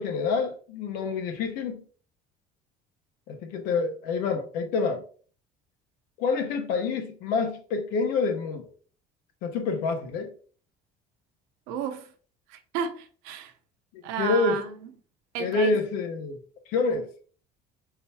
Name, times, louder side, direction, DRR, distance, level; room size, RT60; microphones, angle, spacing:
voice 1, 0.0-1.8 3.3-5.0 6.2-8.7 9.4-10.3 13.9-14.6 15.4-16.4 16.7-17.1, left 4 dB, 70° left, 1.1 m, -27 dB
voice 2, 11.7-12.1 12.5-13.5 14.0-14.9 15.3-15.7, right 7 dB, 90° right, 0.8 m, -32 dB
4.6 x 3.9 x 2.8 m
cardioid pair, 150°, 16 cm